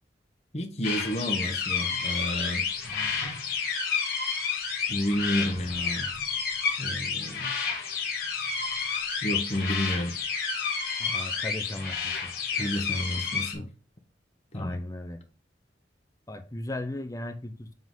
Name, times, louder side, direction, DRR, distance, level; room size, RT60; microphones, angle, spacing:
voice 1, 0.5-2.6 4.9-6.1 6.8-7.5 9.2-10.1 12.5-13.7 14.5-14.8, equal, 35° left, 1.0 m, -30 dB
sound 1, 0.8-13.5, left 5 dB, 50° left, 1.7 m, -30 dB
voice 2, 2.8-3.2 11.0-12.3 14.5-15.2 16.3-17.7, left 1 dB, 20° left, 0.7 m, -37 dB
7.3 x 3.8 x 3.8 m
head